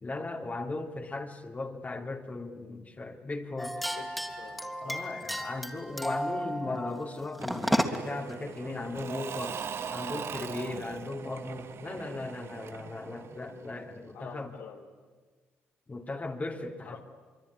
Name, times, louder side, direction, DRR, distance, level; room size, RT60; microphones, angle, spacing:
voice 1, 0.0-3.8 4.8-9.6 9.9-14.5 15.9-17.0, left 3 dB, 30° left, 3 dB, 3.0 m, -37 dB
sound 1, 3.6-8.2, equal, ahead, 3.1 m, -33 dB
voice 2, 3.9-5.2 14.1-14.9 16.9-17.0, left 6 dB, 85° left, 3 dB, 3.9 m, -47 dB
Engine / Mechanisms / Drill, 7.4-14.1, right 7 dB, 60° right, 1.2 m, -41 dB
24.5 x 24.0 x 9.9 m, 1.4 s
supercardioid pair, 65°, 5 cm